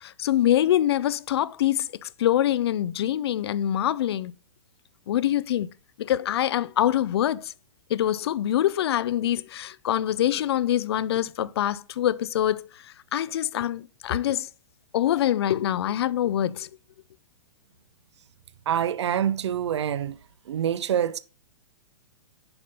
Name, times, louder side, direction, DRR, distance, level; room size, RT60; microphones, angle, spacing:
voice 1, 0.0-4.3 5.1-5.7 6.0-7.5 7.9-12.6 13.1-14.5 14.9-16.7, left 11 dB, 55° left, 0.5 m, -24 dB
voice 2, 18.7-20.2 20.5-21.2, right 9 dB, 60° right, 0.6 m, -26 dB
7.1 x 5.1 x 5.3 m
figure-of-eight pair, 110°, 16 cm